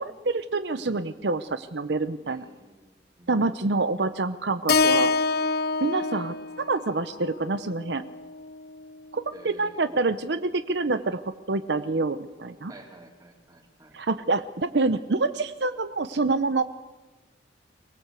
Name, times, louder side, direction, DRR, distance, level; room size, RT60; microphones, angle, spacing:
voice 1, 0.0-2.4 3.3-5.1 5.8-8.0 9.1-12.7 13.9-16.6, right 3 dB, 65° right, 11 dB, 0.8 m, -27 dB
voice 2, 2.2-3.3 9.3-10.1 12.7-13.9, right 1 dB, 20° right, 3 dB, 3.2 m, -51 dB
Keyboard (musical), 4.7-8.9, left 4 dB, 55° left, 0.8 m, -27 dB
24.0 x 19.0 x 8.2 m, 1.2 s
head